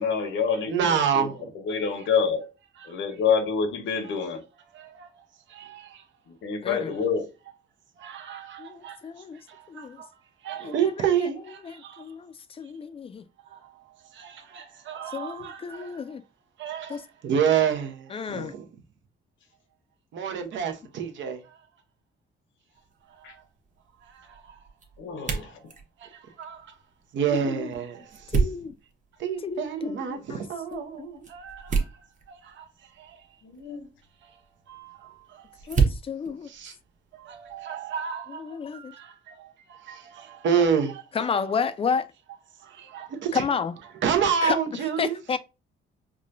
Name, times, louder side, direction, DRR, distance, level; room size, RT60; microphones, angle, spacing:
voice 1, 0.0-1.3 1.7-2.5 2.9-4.4 6.3-7.3 23.2-23.3 25.0-25.6 33.4-33.9 36.3-36.4, left 6 dB, 75° left, 0.9 m, -27 dB
voice 2, 0.7-1.8 2.8-2.9 4.0-4.2 4.7-6.0 8.0-9.0 9.5-10.1 10.4-12.0 13.5-13.8 14.1-16.0 16.6-18.7 20.1-21.6 23.1-23.4 24.0-24.6 25.2-25.5 26.0-26.7 27.1-28.4 29.2-32.0 32.3-33.2 34.2-34.3 34.7-35.6 36.4-36.7 37.1-41.1 42.6-43.4 44.0-45.2, right 7 dB, 70° right, 0.7 m, -30 dB
voice 3, 6.6-6.9 8.6-9.4 9.7-10.0 10.6-11.1 11.6-13.2 15.1-16.2 16.9-17.0 18.1-18.5 27.3-27.7 28.3-28.8 29.4-30.4 30.7-31.1 35.7-36.5 38.3-38.9 41.1-42.1 43.3-43.7 44.4-44.6 45.0-45.4, left 6 dB, 30° left, 0.3 m, -31 dB
sound 1, 22.7-37.6, right 5 dB, 40° right, 0.9 m, -33 dB
4.8 x 2.2 x 2.5 m
cardioid pair, 90°, 20 cm